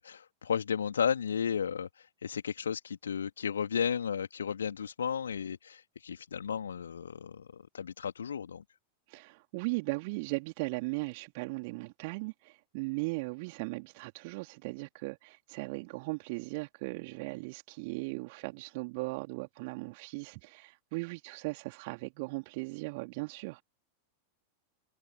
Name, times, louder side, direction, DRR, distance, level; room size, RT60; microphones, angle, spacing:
voice 1, 0.0-8.6, left 7 dB, 70° left, 2.6 m, -34 dB
voice 2, 9.1-23.6, right 27 dB, 50° right, 3.3 m, -38 dB
figure-of-eight pair, 90°, 0 cm